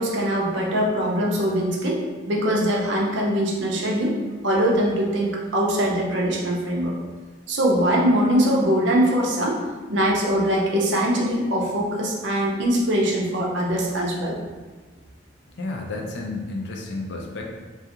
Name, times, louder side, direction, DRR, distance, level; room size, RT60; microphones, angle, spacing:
voice 1, 0.0-4.2 4.4-7.0 7.5-9.6 9.9-14.4, equal, 75° right, -2 dB, 0.6 m, -22 dB
voice 2, 15.5-17.6, left 2 dB, 65° left, 0 dB, 0.4 m, -31 dB
2.4 x 2.3 x 2.8 m, 1.3 s
head